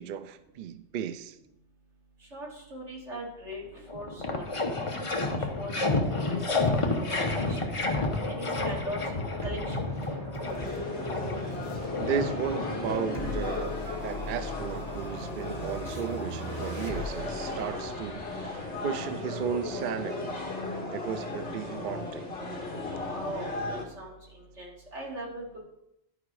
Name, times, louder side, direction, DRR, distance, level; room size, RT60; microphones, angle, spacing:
voice 1, 0.0-1.4 12.0-20.4 20.9-22.3, right 8 dB, 60° right, 11 dB, 0.6 m, -35 dB
voice 2, 2.3-3.6 3.9-4.4 4.7-6.8 7.3-7.8 8.3-9.9 23.1-25.6, equal, 80° right, -4 dB, 2.9 m, -40 dB
sound 1, 3.5-3.6 3.9-13.3, left 3 dB, 30° left, 0.9 m, -30 dB
sound 2, 9.4-20.2, right 1 dB, 35° right, 1.5 m, -40 dB
sound 3, 10.4-23.9, left 3 dB, 60° left, 1.9 m, -36 dB
11.0 x 4.9 x 4.7 m, 0.83 s
omnidirectional pair, 1.2 m